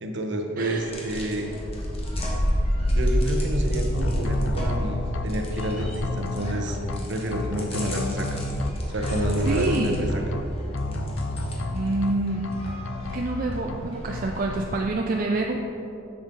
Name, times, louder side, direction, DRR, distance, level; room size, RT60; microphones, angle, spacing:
voice 1, 0.0-1.5 2.9-6.8 7.1-8.4 8.9-10.2, right 1 dB, 60° right, 3 dB, 0.9 m, -29 dB
sound 1, 0.6-14.7, equal, 30° left, 1.3 m, -30 dB
sound 2, 3.9-5.2 5.6-7.0 7.3-8.7 9.0-10.4 10.7-12.1 12.4-13.8 14.1-14.6, left 2 dB, 70° left, 0.5 m, -30 dB
voice 2, 9.4-10.0 11.6-12.5 13.1-15.7, right 2 dB, 45° right, 1 dB, 0.4 m, -27 dB
7.2 x 7.1 x 3.9 m, 2.8 s
head